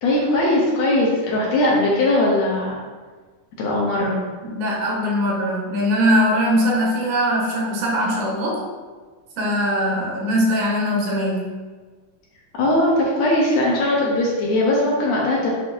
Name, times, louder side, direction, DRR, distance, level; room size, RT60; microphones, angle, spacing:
voice 1, 0.0-2.8 3.6-4.1 12.5-15.5, left 1 dB, 75° left, -4 dB, 1.9 m, -19 dB
voice 2, 4.4-8.6 9.4-11.5, equal, 75° right, -3 dB, 2.3 m, -21 dB
7.5 x 2.6 x 2.6 m, 1.4 s
omnidirectional pair, 3.5 m